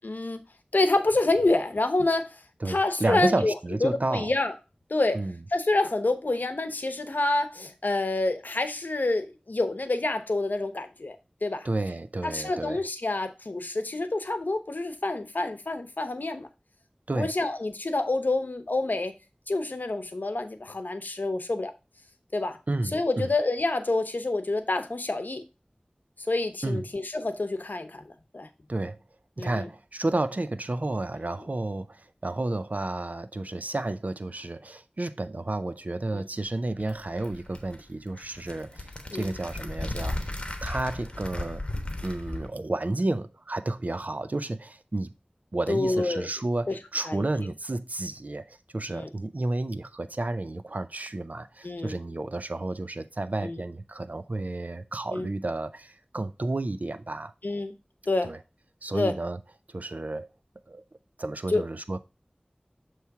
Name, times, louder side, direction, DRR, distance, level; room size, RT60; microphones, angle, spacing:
voice 1, 0.0-0.4 0.7-2.4 2.7-3.5 3.8-4.5 4.9-5.2 5.5-11.2 11.4-11.7 12.2-16.5 17.1-19.1 19.5-21.7 22.3-22.6 22.9-25.4 26.3-28.0 28.3-28.5 29.4-29.7 36.1-36.2 39.1-39.4 45.7-46.3 46.7-46.8 47.1-47.3 48.9-49.1 51.6-52.0 53.4-53.6 55.1-55.3 57.4-57.7 58.1-58.3 58.9-59.1 61.5-61.6, left 2 dB, 90° left, 0.8 m, -27 dB
voice 2, 2.6-4.3 5.1-5.4 11.6-12.9 17.1-17.3 22.7-23.3 26.6-26.8 28.7-29.0 29.4-40.3 40.6-41.6 42.0-45.1 45.5-57.3 58.2-58.4 58.8-59.4 59.7-60.3 60.7-60.8 61.2-62.0, right 2 dB, 60° right, 0.5 m, -31 dB
sound 1, 36.4-42.5, left 1 dB, 40° left, 1.1 m, -36 dB
6.9 x 3.1 x 4.7 m
wide cardioid pair, 45°, 3 cm